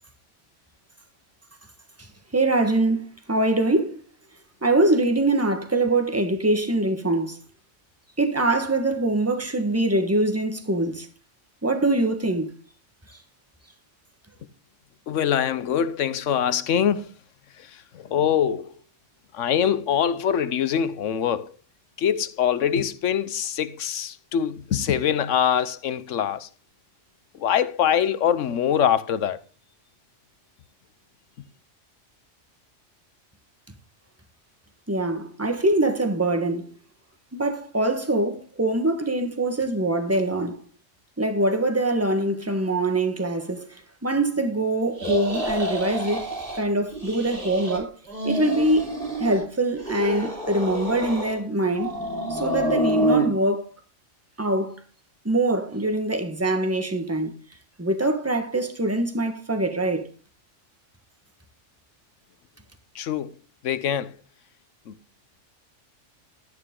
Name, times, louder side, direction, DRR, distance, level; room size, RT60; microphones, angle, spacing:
voice 1, 2.3-4.0 4.6-7.4 8.2-11.1 11.6-12.6 34.9-36.7 37.3-40.6 41.2-46.3 46.6-47.9 48.2-51.9 52.3-53.7 54.4-54.8 55.2-57.4 57.8-60.1, right 2 dB, 10° right, 1.4 m, -23 dB
voice 2, 15.1-17.1 17.6-18.7 19.3-21.5 22.0-26.5 27.3-29.4 62.9-63.4 63.6-64.1 64.9-65.0, left 9 dB, 80° left, 1.1 m, -24 dB
sound 1, 45.0-46.6 46.9-47.8 48.0-49.4 49.8-51.4 51.7-53.3, right 1 dB, 45° right, 3.3 m, -28 dB
12.0 x 9.7 x 3.7 m
omnidirectional pair, 1.3 m